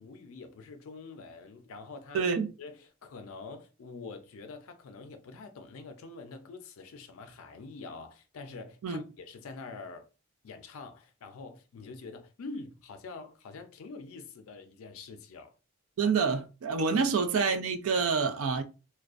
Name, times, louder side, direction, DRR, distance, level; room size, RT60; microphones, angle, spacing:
voice 1, 0.0-2.2 2.6-10.1 10.4-15.5 16.9-17.1, left 3 dB, 75° left, 0.4 m, -45 dB
voice 2, 2.1-2.5 8.8-9.0 16.0-18.6, right 5 dB, 70° right, 0.4 m, -27 dB
2.4 x 2.1 x 2.4 m
head